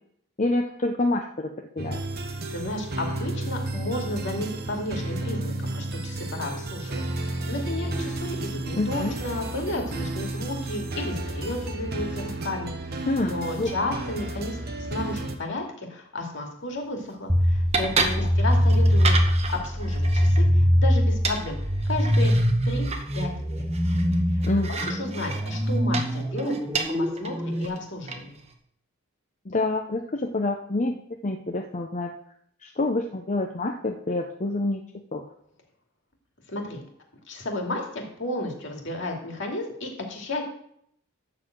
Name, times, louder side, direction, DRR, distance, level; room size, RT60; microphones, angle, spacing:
voice 1, 0.4-1.5 1.8-2.0 8.8-9.1 13.1-13.7 18.2-18.3 24.4-24.7 29.5-31.0 31.2-32.1 32.6-34.8 35.1-35.2, left 2 dB, 35° left, 2 dB, 0.7 m, -27 dB
sound 1, 1.8-15.4, right 2 dB, 45° right, 1.1 m, -32 dB
voice 2, 2.5-14.6 14.9-19.2 19.5-21.6 21.9-22.3 22.6-22.9 23.1-23.7 24.3-24.4 24.9-26.5 26.9-28.4 36.5-36.8 37.3-40.4, left 1 dB, 55° left, 1 dB, 2.4 m, -33 dB
sound 2, 16.6-28.5, right 4 dB, 30° right, 1.0 m, -33 dB
sound 3, 17.3-27.7, equal, 10° right, 0.6 m, -23 dB
12.0 x 4.1 x 7.8 m, 0.69 s
head